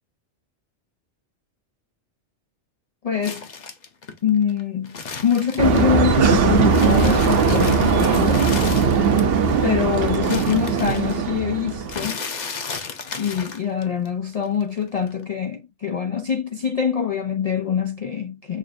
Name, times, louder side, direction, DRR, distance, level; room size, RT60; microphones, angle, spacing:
voice 1, 3.0-3.4 4.2-4.9 5.2-8.6 9.6-12.2 13.2-18.6, left 8 dB, 65° left, 0.3 m, -24 dB
sound 1, 3.2-6.2 6.5-9.4 9.7-14.1 14.3-15.2, left 5 dB, 45° left, 0.8 m, -34 dB
sound 2, 5.6-12.1, right 5 dB, 60° right, 0.9 m, -19 dB
6.2 x 2.5 x 2.5 m
omnidirectional pair, 1.2 m